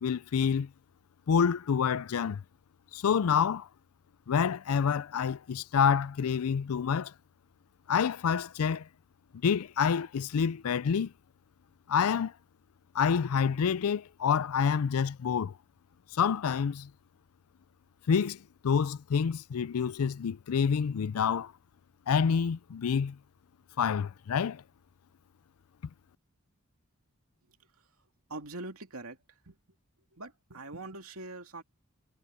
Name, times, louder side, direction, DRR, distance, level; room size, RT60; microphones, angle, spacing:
voice 1, 0.0-0.7 1.3-2.4 2.9-3.7 4.3-7.1 7.9-8.9 9.4-11.1 11.9-12.3 12.9-15.5 16.1-16.9 18.1-21.5 22.1-23.2 23.8-24.6, left 7 dB, 80° left, 0.4 m, -27 dB
voice 2, 28.3-29.2 29.5-29.6 30.1-31.6, right 2 dB, 75° right, 2.7 m, -42 dB
head